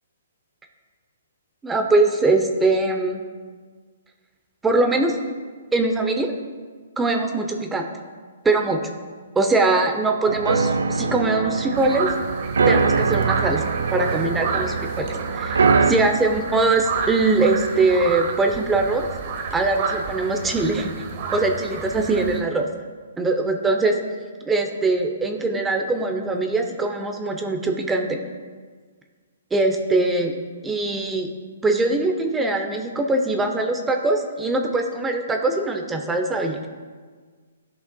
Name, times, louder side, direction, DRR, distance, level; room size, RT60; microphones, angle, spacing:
voice 1, 1.6-3.2 4.6-5.2 5.7-6.3 7.0-7.9 8.4-8.8 9.4-12.1 12.7-13.6 13.9-15.1 15.3-19.1 19.5-20.9 21.3-22.7 23.2-24.0 24.5-28.2 29.5-30.3 30.6-31.3 31.6-36.7, right 2 dB, 10° right, 4 dB, 0.6 m, -22 dB
sound 1, 10.3-15.9, right 5 dB, 90° right, 0.5 m, -22 dB
sound 2, 11.8-22.4, right 5 dB, 45° right, 0.8 m, -30 dB
13.0 x 5.4 x 2.3 m, 1.5 s
hypercardioid pair, 150°, 0 cm